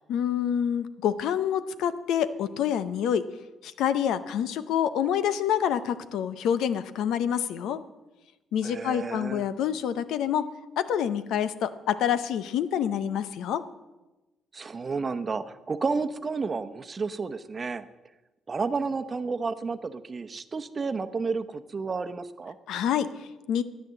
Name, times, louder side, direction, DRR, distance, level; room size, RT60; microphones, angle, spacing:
voice 1, 0.1-3.3 3.6-7.8 8.5-10.5 10.8-13.6 22.7-23.6, left 9 dB, 85° left, 14 dB, 0.7 m, -27 dB
voice 2, 8.6-9.4 14.5-17.9 18.5-22.6, right 4 dB, 35° right, 11 dB, 0.9 m, -31 dB
13.5 x 9.2 x 7.6 m, 1.1 s
cardioid pair, 90°, 0 cm